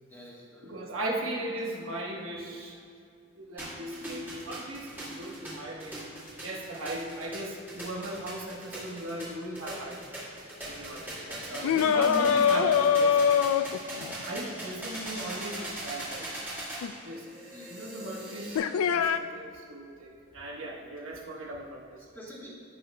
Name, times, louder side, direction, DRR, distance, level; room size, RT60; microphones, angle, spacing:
voice 1, 0.1-0.7 11.5-11.8 17.5-18.0 22.1-22.5, left 1 dB, 10° left, -5 dB, 1.2 m, -48 dB
voice 2, 0.6-2.8 3.4-6.0 6.4-10.0 10.7-13.4 14.2-16.3 16.9-17.3 17.7-22.0, right 1 dB, 75° right, -1 dB, 1.2 m, -38 dB
sound 1, 3.6-18.6, right 1 dB, 10° right, 1.9 m, -40 dB
sound 2, 11.6-14.2 16.8-16.9 18.5-19.2, left 7 dB, 90° left, 0.3 m, -23 dB
15.0 x 5.9 x 2.2 m, 2.4 s
head